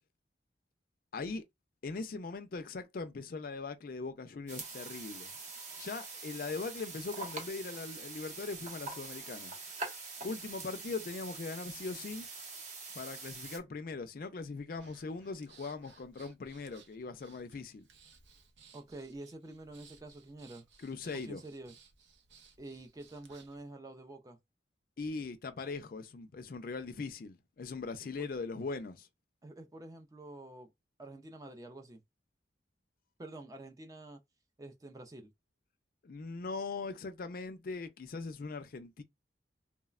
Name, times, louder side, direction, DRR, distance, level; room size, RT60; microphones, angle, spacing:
voice 1, 1.1-1.4 1.8-5.3 5.8-9.5 10.2-12.3 12.9-17.8 20.8-21.4 25.0-29.1 36.0-39.0, left 4 dB, 50° left, 0.4 m, -40 dB
sound 1, 4.5-13.6, right 3 dB, 40° right, 0.7 m, -44 dB
Breathing, 14.8-23.6, right 5 dB, 85° right, 0.6 m, -61 dB
voice 2, 18.7-20.7 21.1-21.7 22.6-24.4 28.0-28.3 29.4-30.7 31.0-32.0 33.2-34.2 34.6-35.3, right 2 dB, 20° right, 0.4 m, -48 dB
3.1 x 2.0 x 2.3 m
head